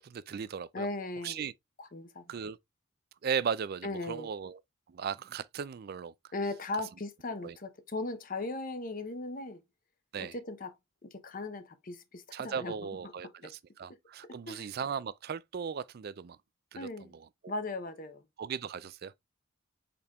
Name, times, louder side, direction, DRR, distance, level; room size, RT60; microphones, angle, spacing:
voice 1, 0.0-0.9 1.2-1.5 2.3-2.6 3.2-4.6 4.9-6.1 7.4-7.6 10.1-10.3 12.3-16.4 16.7-17.5 18.4-19.1, right 7 dB, 50° right, 0.4 m, -37 dB
voice 2, 0.7-1.4 1.8-2.3 3.8-4.3 6.3-9.6 10.2-10.7 11.0-12.8 13.4-13.5 14.2-14.7 16.7-17.1 17.5-18.2, left 2 dB, 40° left, 0.7 m, -38 dB
5.2 x 4.4 x 2.3 m
head